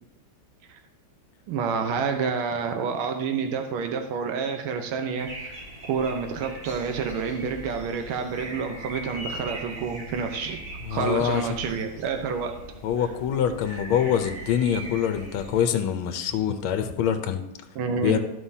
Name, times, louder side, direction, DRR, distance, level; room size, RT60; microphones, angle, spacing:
voice 1, 1.5-5.6 5.9-10.6 10.9-12.5 17.7-18.2, right 5 dB, 80° right, 5 dB, 1.7 m, -28 dB
sound 1, 5.2-15.5, right 1 dB, 45° right, 2.6 m, -40 dB
voice 2, 10.8-11.4 12.8-17.4 17.9-18.2, left 9 dB, 80° left, 8 dB, 1.5 m, -25 dB
13.0 x 5.6 x 2.7 m, 0.90 s
omnidirectional pair, 2.3 m